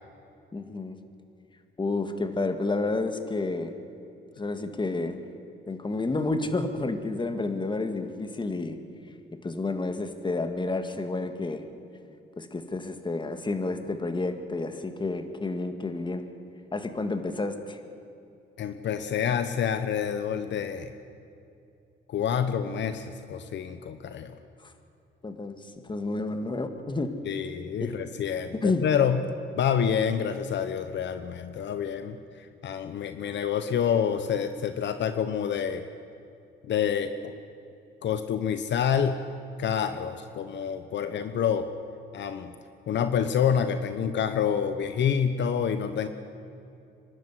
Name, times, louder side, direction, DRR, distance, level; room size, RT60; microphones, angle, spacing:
voice 1, 0.5-1.0 1.8-3.8 4.4-5.2 5.7-8.8 9.4-11.6 12.4-16.2 16.7-17.8 24.6-24.7 25.2-27.1 27.8-27.9 28.6-28.9, left 3 dB, 25° left, 8 dB, 1.9 m, -30 dB
voice 2, 18.6-20.9 22.1-24.3 27.3-29.2 29.5-35.8 36.6-37.3 38.0-39.2 39.6-41.7 42.1-42.5 42.9-46.1, left 8 dB, 65° left, 10 dB, 1.0 m, -27 dB
24.5 x 12.0 x 9.8 m, 2.6 s
cardioid pair, 90°, 20 cm